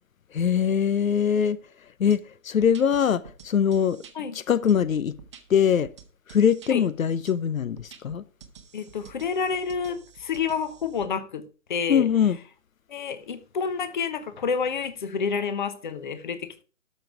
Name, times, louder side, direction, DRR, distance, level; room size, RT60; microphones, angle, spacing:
voice 1, 0.3-1.6 2.0-4.0 4.5-5.2 5.5-5.9 6.3-8.2 11.9-12.4, left 8 dB, 85° left, 0.7 m, -22 dB
sound 1, 2.1-2.2 2.6-4.1 4.7-6.7 7.3-7.4 7.8-11.1, right 7 dB, 20° right, 0.9 m, -49 dB
voice 2, 8.7-11.4 11.7-12.1 12.9-16.6, left 6 dB, 35° left, 1.0 m, -29 dB
12.0 x 6.3 x 4.8 m
hypercardioid pair, 160°, 40 cm